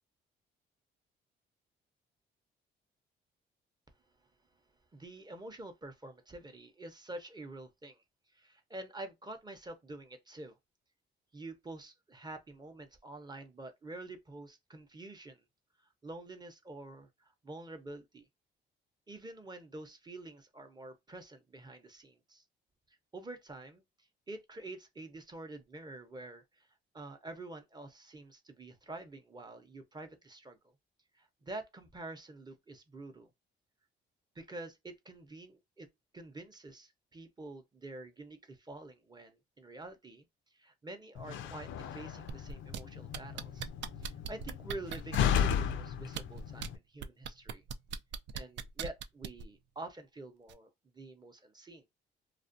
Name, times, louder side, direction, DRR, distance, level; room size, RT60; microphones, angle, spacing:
voice 1, 4.9-8.0 8.3-10.6 11.3-15.4 16.0-18.3 19.1-22.4 23.1-26.7 26.9-30.7 31.1-33.3 34.3-35.9 36.1-40.2 40.5-43.7 44.0-47.6 48.3-51.9, right 2 dB, 20° right, 0.6 m, -47 dB
Slam, 41.2-46.8, left 8 dB, 75° left, 0.4 m, -35 dB
sound 1, 42.3-42.8 43.1-45.6 46.1-46.7 47.0-49.4 50.5-50.6, right 8 dB, 65° right, 0.4 m, -39 dB
2.4 x 2.1 x 2.5 m
cardioid pair, 90°, 20 cm